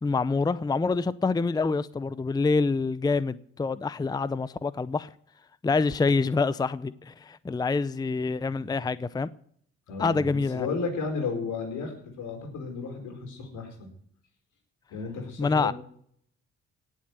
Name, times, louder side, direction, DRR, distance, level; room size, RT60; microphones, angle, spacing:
voice 1, 0.0-5.1 5.6-9.3 10.0-10.7 15.4-15.7, left 4 dB, 15° left, 0.5 m, -26 dB
voice 2, 9.9-13.9 14.9-15.7, left 4 dB, 80° left, 4.9 m, -33 dB
18.0 x 7.5 x 8.0 m
cardioid pair, 90°, 30 cm